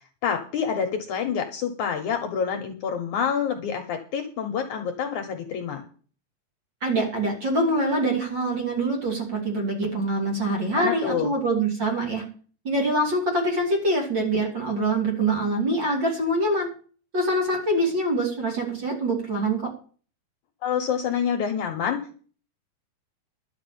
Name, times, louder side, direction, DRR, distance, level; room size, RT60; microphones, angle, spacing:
voice 1, 0.2-5.8 10.7-11.3 20.6-22.2, left 7 dB, 65° left, 5 dB, 2.3 m, -27 dB
voice 2, 6.8-12.2 12.6-16.7 17.1-19.6, right 1 dB, 30° right, 0 dB, 3.1 m, -24 dB
11.5 x 6.1 x 8.6 m, 0.42 s
omnidirectional pair, 4.3 m